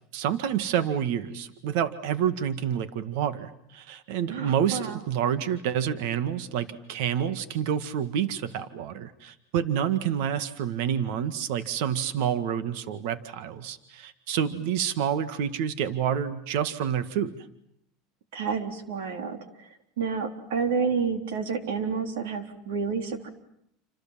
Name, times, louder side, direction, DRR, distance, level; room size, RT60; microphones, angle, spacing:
voice 1, 0.1-17.4, right 9 dB, 70° right, 13 dB, 1.9 m, -28 dB
voice 2, 4.3-5.0 18.3-19.7 20.0-23.3, right 5 dB, 90° right, 8 dB, 3.8 m, -30 dB
28.5 x 27.0 x 7.6 m, 0.74 s
supercardioid pair, 130°, 0 cm